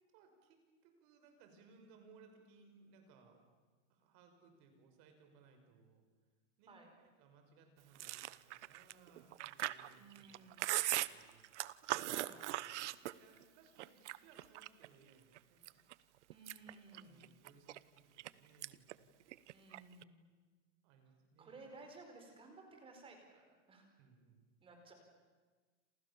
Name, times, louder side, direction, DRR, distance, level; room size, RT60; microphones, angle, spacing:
voice 1, 0.1-0.6 0.8-3.4 3.9-6.0 6.6-15.8 16.8-19.1 20.8-21.6 24.0-24.4, right 4 dB, 45° right, 5 dB, 5.8 m, -65 dB
Chewing mastication, 7.9-13.4 13.8-14.9 15.3-15.9 16.3-18.3 18.6-18.9 19.2-20.0, right 15 dB, 70° right, 1.0 m, -40 dB
voice 2, 9.8-10.6 12.1-12.4 16.3-17.4 19.5-20.3 21.4-23.9 24.6-24.9, right 3 dB, 15° right, 4 dB, 4.8 m, -57 dB
28.5 x 28.0 x 7.1 m, 1.3 s
supercardioid pair, 165°, 36 cm